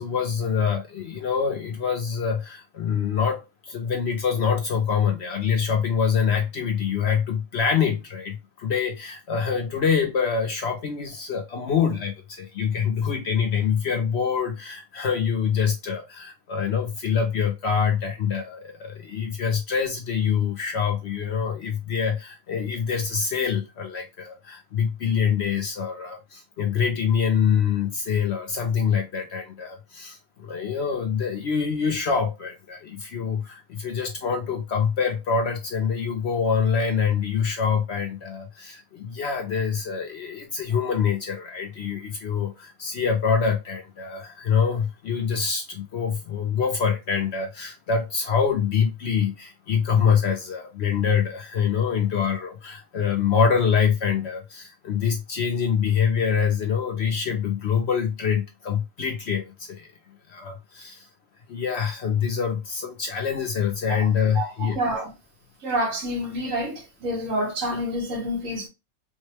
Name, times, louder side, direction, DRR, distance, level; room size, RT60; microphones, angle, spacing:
voice 1, 0.0-59.9 60.3-61.1 61.5-64.8, left 6 dB, 60° left, 0.7 m, -25 dB
voice 2, 64.3-65.1 65.6-68.7, equal, 65° right, 1.5 m, -28 dB
3.6 x 2.2 x 3.2 m
omnidirectional pair, 1.5 m